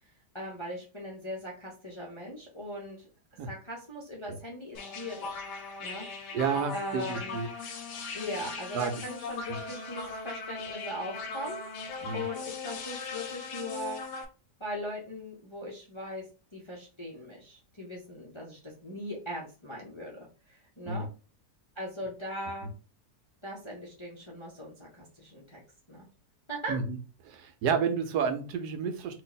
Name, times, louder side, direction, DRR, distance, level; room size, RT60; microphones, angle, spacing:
voice 1, 0.3-3.1 3.5-5.4 5.8-6.4 6.7-7.4 8.1-11.6 12.1-14.0 14.6-16.2 16.5-20.2 20.5-21.1 21.8-22.7 23.4-25.6 25.9-26.1 26.5-26.8, equal, 25° left, -3 dB, 0.6 m, -39 dB
sound 1, 4.7-14.2, left 4 dB, 85° left, 1.3 m, -39 dB
voice 2, 6.3-7.5 8.7-8.9 9.5-9.6 12.0-12.2 20.8-21.1 26.7-27.0 27.2-29.2, right 6 dB, 80° right, 8 dB, 1.2 m, -30 dB
2.9 x 2.6 x 4.0 m, 0.36 s
omnidirectional pair, 1.7 m